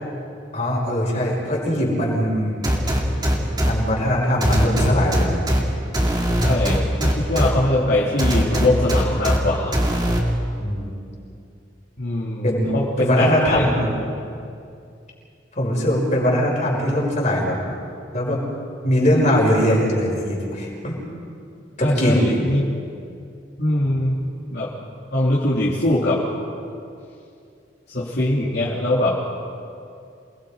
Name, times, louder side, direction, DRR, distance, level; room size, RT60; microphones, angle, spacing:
voice 1, 0.5-2.6 3.2-3.3 3.6-5.4 10.6-10.9 12.4-12.7 13.0-13.9 15.6-17.7 18.1-18.4 18.8-21.0 21.8-22.4, equal, 40° left, -3 dB, 5.9 m, -21 dB
sound 1, 2.6-3.7 4.4-5.6 5.9-7.5 8.2-9.4 9.7-10.2, equal, 20° right, 2.7 m, -20 dB
voice 2, 6.4-9.7 12.0-13.6 21.8-22.6 23.6-24.1 24.5-24.7 25.1-26.2 27.9-29.2, left 1 dB, 55° left, -9 dB, 3.5 m, -22 dB
28.5 x 21.0 x 5.3 m, 2.5 s
head